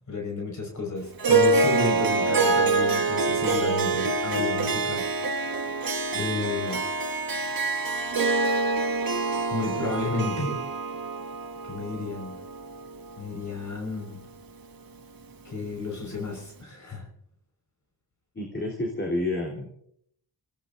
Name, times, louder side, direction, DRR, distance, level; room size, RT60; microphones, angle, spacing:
voice 1, 0.1-5.7 6.1-6.8 9.5-10.6 11.6-12.4 13.2-14.2 15.4-17.1, left 3 dB, 50° left, 1 dB, 5.6 m, -32 dB
Harp, 1.2-13.8, right 3 dB, 60° right, 1.7 m, -26 dB
voice 2, 18.3-19.7, left 2 dB, 30° left, -2 dB, 3.9 m, -29 dB
29.0 x 18.0 x 2.7 m, 0.70 s
wide cardioid pair, 100°, 39 cm